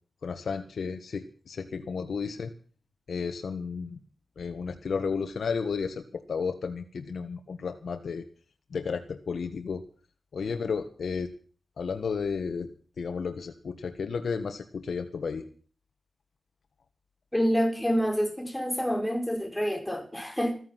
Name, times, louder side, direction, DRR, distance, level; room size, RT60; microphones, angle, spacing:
voice 1, 0.2-2.5 3.1-4.0 4.4-8.2 8.7-9.8 10.3-11.3 11.8-12.7 13.0-15.4, left 5 dB, 85° left, 1.5 m, -33 dB
voice 2, 17.3-20.6, equal, 5° left, 4.9 m, -27 dB
14.5 x 14.5 x 5.9 m
cardioid pair, 65°, 0 cm